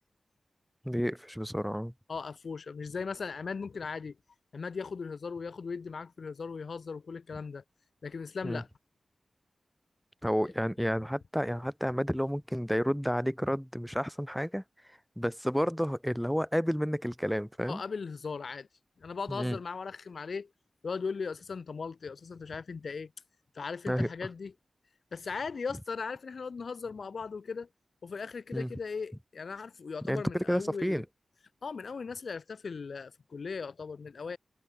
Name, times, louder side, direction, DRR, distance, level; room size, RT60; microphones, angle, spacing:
voice 1, 0.8-1.9 8.4-8.6 10.2-14.6 15.2-17.8 19.3-19.6 23.9-24.1 28.5-28.7 30.1-31.0, equal, ahead, 1.8 m, -30 dB
voice 2, 2.1-4.2 4.5-7.6 8.0-8.7 17.7-18.7 19.0-20.5 20.8-23.1 23.5-24.5 25.1-27.7 28.0-31.0 31.6-34.4, left 5 dB, 75° left, 1.3 m, -38 dB
cardioid pair, 45°, 0 cm